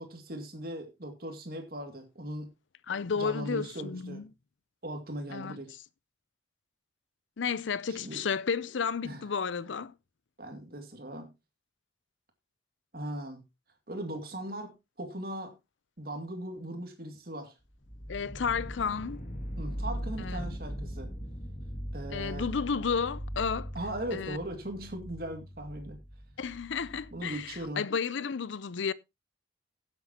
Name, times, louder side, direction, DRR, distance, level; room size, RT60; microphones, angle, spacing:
voice 1, 0.0-2.5 3.1-4.2 4.8-5.8 7.9-8.2 9.0-9.3 10.4-11.3 12.9-13.4 13.9-15.5 16.0-17.5 19.6-21.1 21.9-22.5 23.7-26.0 27.1-27.9, right 1 dB, 55° right, 2.4 m, -39 dB
voice 2, 2.9-4.3 5.3-5.6 7.4-9.9 18.1-19.2 20.2-20.5 22.1-23.7 24.1-24.4 26.4-28.9, left 6 dB, 90° left, 0.6 m, -32 dB
sound 1, 17.8-27.7, equal, 45° left, 2.3 m, -40 dB
16.5 x 7.7 x 2.9 m
head